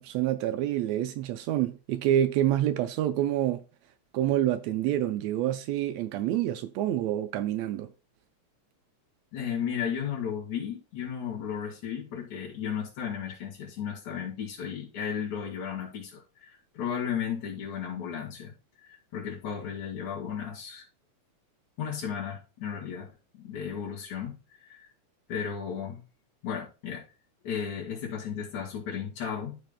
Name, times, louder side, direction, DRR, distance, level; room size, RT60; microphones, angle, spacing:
voice 1, 0.0-3.6 4.1-7.9, right 12 dB, 80° right, 1.6 m, -27 dB
voice 2, 9.3-18.5 18.8-20.8 21.8-24.9 25.3-26.0 26.4-27.1 27.4-29.6, left 8 dB, 85° left, 3.6 m, -34 dB
13.0 x 5.3 x 2.2 m
omnidirectional pair, 3.3 m